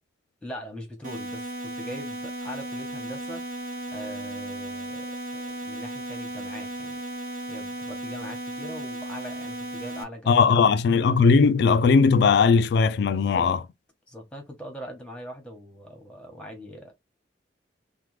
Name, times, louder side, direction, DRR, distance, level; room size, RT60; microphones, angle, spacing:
voice 1, 0.4-3.4 3.9-7.0 7.5-10.7 13.1-13.5 14.1-16.9, equal, 5° left, 1.0 m, -41 dB
sound 1, 1.0-10.0, right 1 dB, 45° right, 0.9 m, -35 dB
voice 2, 10.3-13.6, left 5 dB, 60° left, 0.3 m, -19 dB
3.2 x 2.1 x 3.2 m
head